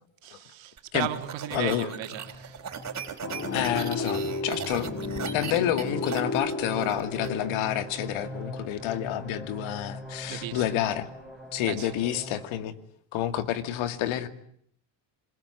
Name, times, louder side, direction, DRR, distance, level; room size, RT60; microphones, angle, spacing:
voice 1, 0.2-2.6 10.3-10.6 11.6-11.9, right 13 dB, 70° right, 3.3 m, -35 dB
sound 1, 0.8-7.3, right 7 dB, 35° right, 4.2 m, -38 dB
voice 2, 1.5-1.9 3.5-4.9 5.3-11.1 11.5-12.7 13.1-14.3, left 11 dB, 80° left, 2.4 m, -29 dB
sound 2, 1.7-12.5, left 1 dB, ahead, 6.1 m, -42 dB
sound 3, 3.2-9.1, left 3 dB, 30° left, 3.1 m, -34 dB
27.0 x 22.0 x 9.8 m
cardioid pair, 110°, 48 cm